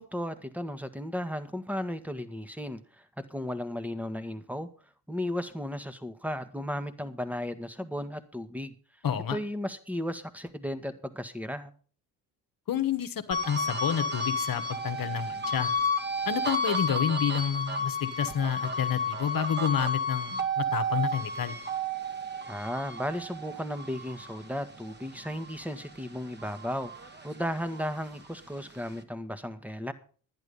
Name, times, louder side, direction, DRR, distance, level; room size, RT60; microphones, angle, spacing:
voice 1, 0.0-4.7 5.1-8.7 9.3-11.7 22.5-29.9, equal, 5° right, 11 dB, 1.5 m, -35 dB
voice 2, 9.0-9.4 12.7-15.7 16.2-21.5, left 9 dB, 45° left, 11 dB, 1.4 m, -29 dB
sound 1, 13.3-25.9 26.3-28.0, left 1 dB, 20° right, 1.6 m, -32 dB
11.0 x 10.0 x 5.4 m, 0.42 s
hypercardioid pair, 55°, 46 cm